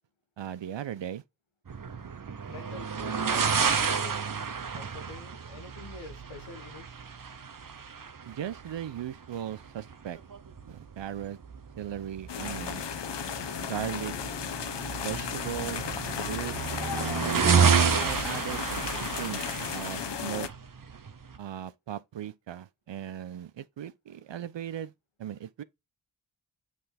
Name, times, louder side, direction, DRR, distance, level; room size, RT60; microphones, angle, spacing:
voice 1, 0.4-1.2 8.3-10.2 10.7-11.4 11.8-12.8 13.6-14.1 15.0-15.9 16.2-16.8 17.5-18.8 19.2-20.5 21.4-24.9 25.2-25.6, right 10 dB, 70° right, 0.7 m, -37 dB
sound 1, 1.7-21.4, right 6 dB, 45° right, 0.9 m, -31 dB
voice 2, 2.5-4.2 4.7-7.0, left 4 dB, 85° left, 1.4 m, -46 dB
sound 2, 12.3-20.5, left 7 dB, 60° left, 0.9 m, -35 dB
7.6 x 3.4 x 4.2 m
cardioid pair, 45°, 47 cm